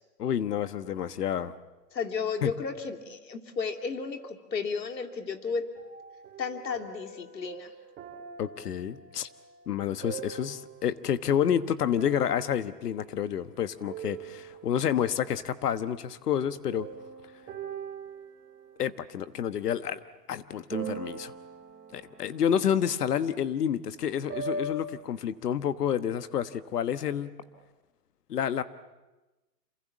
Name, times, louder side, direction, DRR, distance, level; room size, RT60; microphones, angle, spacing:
voice 1, 0.2-1.5 2.4-2.5 8.4-9.3 9.7-16.9 18.8-21.3 21.9-27.4 28.3-28.6, left 9 dB, 70° left, 12 dB, 1.3 m, -29 dB
voice 2, 1.9-5.7 6.4-7.7, left 5 dB, 90° left, 5 dB, 2.9 m, -33 dB
sound 1, 5.8-11.2 11.9-13.5 13.8-15.1 16.7-19.8 20.7-24.8, right 4 dB, 25° right, 3.6 m, -42 dB
27.5 x 26.0 x 7.3 m, 1.1 s
hypercardioid pair, 140°, 49 cm